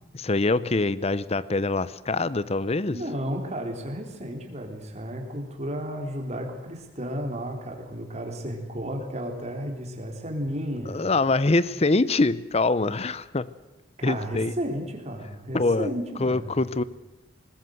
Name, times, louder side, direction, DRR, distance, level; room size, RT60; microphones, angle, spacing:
voice 1, 0.1-3.0 10.9-13.5 14.0-14.5 15.5-15.9 16.2-16.8, left 3 dB, 35° left, 18 dB, 0.7 m, -24 dB
voice 2, 2.9-11.0 14.0-16.6, equal, 35° right, 3 dB, 3.6 m, -33 dB
20.5 x 19.5 x 7.8 m, 1.0 s
head